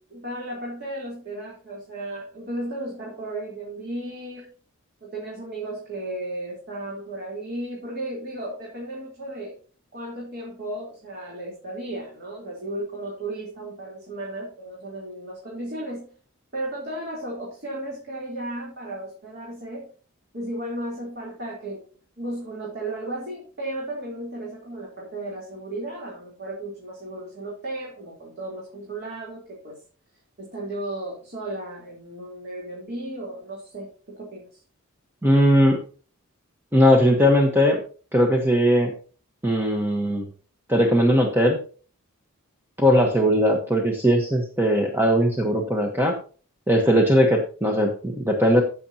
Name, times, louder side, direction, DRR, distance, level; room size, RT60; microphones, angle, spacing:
voice 1, 0.0-4.5 5.0-9.6 9.9-16.1 16.5-19.9 20.3-21.8 22.2-29.8 30.4-34.6, right 1 dB, 45° right, -4 dB, 3.5 m, -34 dB
voice 2, 35.2-35.8 36.7-37.8 38.1-38.9 39.4-40.3 40.7-41.6 42.8-46.1 46.7-48.6, equal, 10° right, 1 dB, 1.2 m, -19 dB
16.0 x 7.0 x 2.9 m, 0.39 s
head